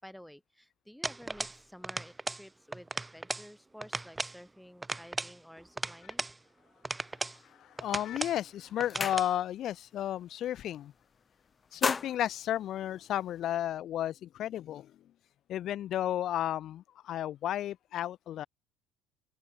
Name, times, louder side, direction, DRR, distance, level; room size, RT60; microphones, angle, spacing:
voice 1, 0.0-6.3, equal, ahead, 7.9 m, -52 dB
sound 1, 1.0-1.6 1.8-2.5 2.7-3.5 3.8-4.4 4.8-6.4 6.8-7.4 7.8-8.4 8.8-9.3, right 2 dB, 15° right, 3.1 m, -36 dB
voice 2, 7.4-10.9 11.7-14.9 15.5-18.5, left 12 dB, 55° left, 0.5 m, -33 dB
sound 2, 8.0-8.2 8.5-9.7 10.1-10.3 10.6-11.2 11.5-13.4, left 5 dB, 25° left, 0.8 m, -36 dB
open air
hypercardioid pair, 70°, 0 cm